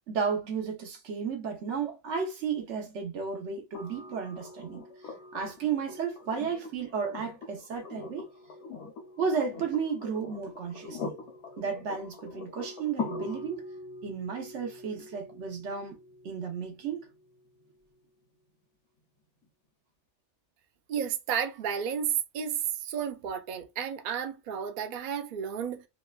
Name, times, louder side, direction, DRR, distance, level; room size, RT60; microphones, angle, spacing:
voice 1, 0.1-4.8 5.3-8.3 9.2-11.1 11.6-13.7 14.0-16.0 16.2-17.0, right 6 dB, 80° right, 1.1 m, -33 dB
sound 1, 3.7-17.7 19.4-19.5, left 4 dB, 75° left, 1.0 m, -43 dB
voice 2, 20.9-25.8, right 8 dB, 60° right, 0.5 m, -32 dB
3.1 x 2.1 x 2.3 m
omnidirectional pair, 1.2 m